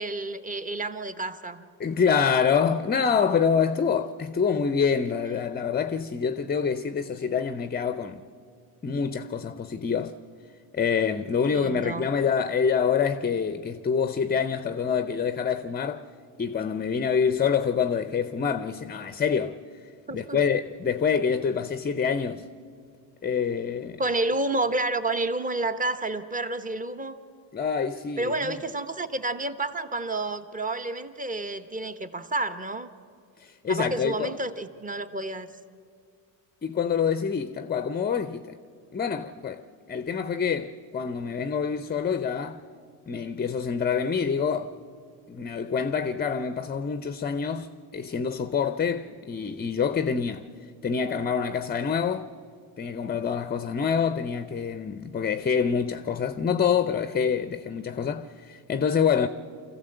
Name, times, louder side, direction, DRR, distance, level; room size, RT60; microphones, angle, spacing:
voice 1, 0.0-1.6 11.5-12.1 20.1-20.4 24.0-27.2 28.2-32.9 33.7-35.5, right 2 dB, 15° right, 1.1 m, -30 dB
voice 2, 1.8-8.2 8.8-10.1 10.7-16.1 16.4-19.6 20.1-22.5 23.2-24.0 27.5-28.5 33.4-34.3 36.6-38.4 38.9-39.6 39.9-42.6 43.1-44.8 45.3-50.5 50.8-52.3 52.8-59.3, left 6 dB, 20° left, 0.6 m, -26 dB
24.5 x 15.0 x 7.9 m
supercardioid pair, 80°, 48 cm